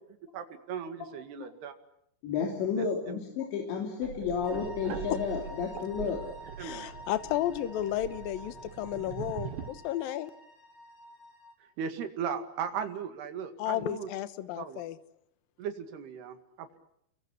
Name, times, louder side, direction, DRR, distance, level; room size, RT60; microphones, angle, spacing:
voice 1, 0.3-1.7 2.8-3.2 6.0-6.1 6.6-6.9 11.8-14.1 14.6-14.8 15.6-16.8, right 7 dB, 70° right, 8 dB, 4.1 m, -37 dB
voice 2, 2.2-6.3, left 6 dB, 85° left, 1 dB, 5.3 m, -32 dB
sound 1, 4.0-9.7, right 7 dB, 90° right, 4.2 m, -42 dB
sound 2, 4.4-11.5, equal, 35° left, 5.0 m, -49 dB
voice 3, 6.6-10.3 13.6-15.0, left 12 dB, 65° left, 12 dB, 2.7 m, -33 dB
29.5 x 23.0 x 8.4 m, 0.74 s
omnidirectional pair, 5.0 m